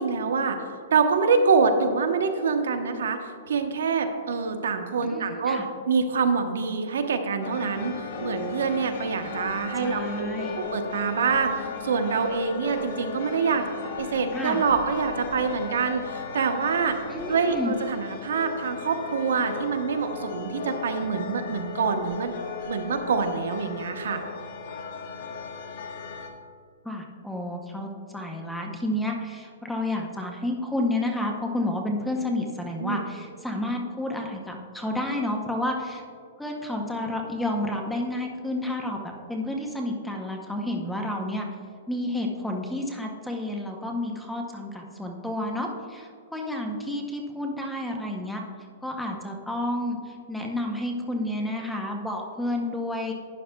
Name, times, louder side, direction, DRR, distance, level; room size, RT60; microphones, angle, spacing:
voice 1, 0.0-13.6 14.0-17.0 17.3-22.3 22.7-24.2 32.8-33.0, right 5 dB, 85° right, 6 dB, 0.9 m, -26 dB
voice 2, 5.0-5.7 9.8-10.6 14.3-14.6 17.1-17.7 26.8-36.0 36.4-41.4 41.9-48.4 48.8-53.1, left 1 dB, ahead, 1 dB, 0.7 m, -30 dB
sound 1, 7.4-26.3, left 4 dB, 55° left, 1.1 m, -37 dB
11.5 x 9.3 x 2.2 m, 2.2 s
hypercardioid pair, 165°, 0 cm